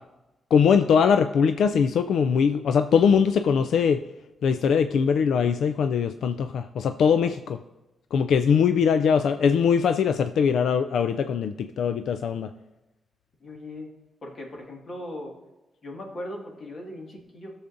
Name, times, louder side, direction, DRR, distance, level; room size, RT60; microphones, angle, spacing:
voice 1, 0.5-4.0 4.4-7.6 8.1-12.5, left 6 dB, 85° left, 9 dB, 0.3 m, -21 dB
voice 2, 13.4-13.9 14.2-15.3 15.8-17.5, left 1 dB, 45° left, 0 dB, 1.9 m, -38 dB
17.0 x 7.0 x 2.6 m, 1.0 s
wide cardioid pair, 135°, 0 cm